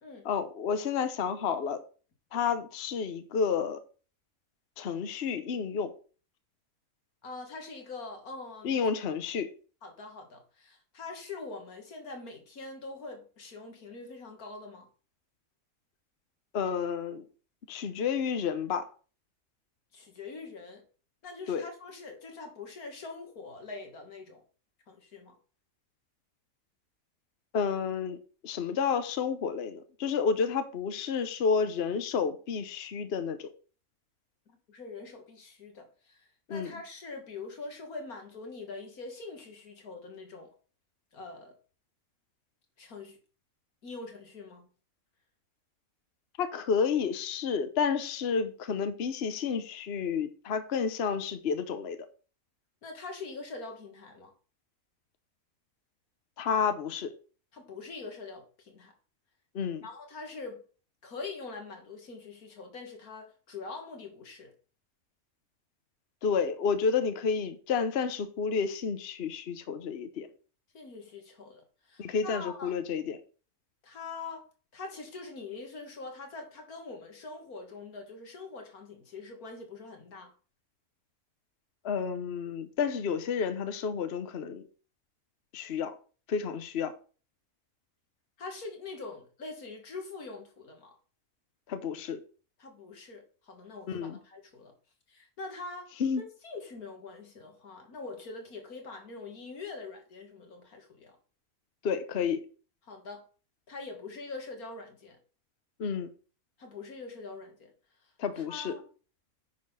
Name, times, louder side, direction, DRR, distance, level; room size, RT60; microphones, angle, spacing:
voice 1, 0.2-1.8 2.3-3.8 4.8-5.9 8.6-9.5 16.5-17.3 17.7-18.9 21.5-21.6 27.5-28.2 28.4-33.5 36.5-36.7 46.4-52.0 56.4-57.1 59.5-59.8 66.2-70.3 72.0-73.2 81.8-84.6 85.5-85.9 86.3-86.9 91.7-92.2 93.9-94.2 96.0-96.2 101.8-102.4 105.8-106.1 108.2-108.8, left 6 dB, 50° left, 1.0 m, -30 dB
voice 2, 7.2-8.9 9.8-14.9 19.9-20.8 21.2-24.4 24.9-25.4 34.5-40.5 41.1-41.5 42.8-43.2 43.8-44.7 52.8-54.3 57.5-58.9 59.8-60.6 61.0-64.5 70.7-72.7 73.8-74.5 74.7-80.3 88.4-91.0 92.6-94.7 95.1-95.9 96.2-101.2 102.9-103.2 103.7-105.2 106.6-107.7 108.4-108.8, left 3 dB, 90° left, 2.3 m, -43 dB
9.6 x 4.2 x 5.6 m
omnidirectional pair, 1.5 m